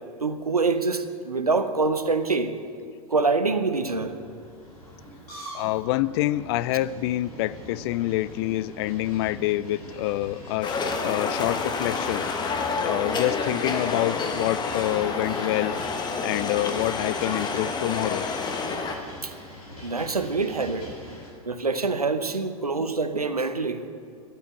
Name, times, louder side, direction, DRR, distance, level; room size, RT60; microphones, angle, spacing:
voice 1, 0.2-2.5 3.1-4.1 19.2-19.3 19.8-20.9 21.4-23.8, right 3 dB, 85° right, 10 dB, 0.8 m, -25 dB
sound 1, 3.7-21.3, left 1 dB, 80° left, 3.6 m, -43 dB
voice 2, 5.5-12.3 12.8-15.7 16.2-18.3, left 15 dB, 45° left, 17 dB, 0.4 m, -27 dB
sound 2, 10.6-19.0, left 4 dB, 20° left, 1.2 m, -29 dB
12.0 x 8.8 x 8.5 m, 2.3 s
figure-of-eight pair, 85°, 19 cm